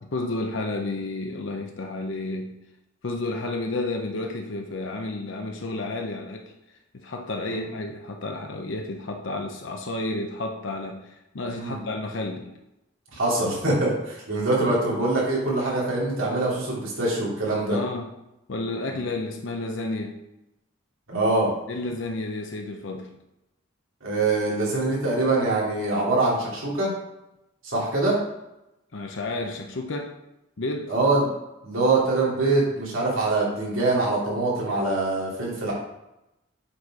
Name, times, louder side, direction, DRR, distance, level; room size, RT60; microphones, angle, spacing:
voice 1, 0.0-2.5 3.0-6.5 6.9-12.5 17.7-18.1 18.5-20.2 21.7-23.1 28.9-30.1 30.6-30.9, left 2 dB, 65° left, 3 dB, 0.7 m, -31 dB
voice 2, 13.1-17.8 21.1-21.5 24.0-26.9 27.6-28.2 30.9-31.2 31.6-35.7, right 2 dB, 85° right, -4 dB, 2.7 m, -24 dB
7.7 x 4.2 x 4.7 m, 0.91 s
head